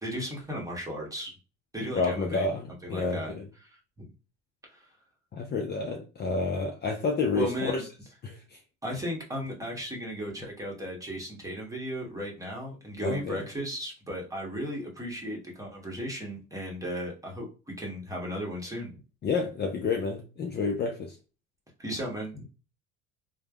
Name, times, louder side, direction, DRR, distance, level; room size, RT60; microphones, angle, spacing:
voice 1, 0.0-1.3 1.7-2.4 2.8-3.8 4.7-4.9 7.3-7.8 8.8-17.4 17.8-18.9 21.8-22.5, equal, 10° right, -1 dB, 1.0 m, -35 dB
voice 2, 1.9-3.4 5.3-7.7 8.2-8.6 13.0-13.4 19.2-21.2, left 4 dB, 30° left, 2 dB, 0.5 m, -29 dB
3.2 x 2.1 x 2.3 m, 0.33 s
supercardioid pair, 90°, 33 cm